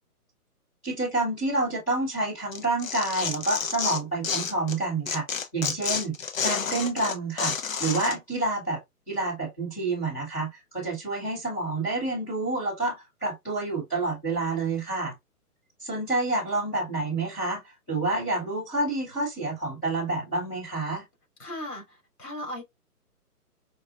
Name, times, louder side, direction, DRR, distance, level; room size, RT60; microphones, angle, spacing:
voice 1, 0.8-6.1 6.4-8.8 9.1-15.1 15.8-17.6 17.9-21.0, right 2 dB, 5° left, 1.0 m, -28 dB
Tearing, 2.5-4.8 5.1-8.2, left 6 dB, 60° left, 0.6 m, -30 dB
voice 2, 21.4-22.6, left 1 dB, 85° left, 2.7 m, -37 dB
4.8 x 2.4 x 2.3 m
hypercardioid pair, 175°, 46 cm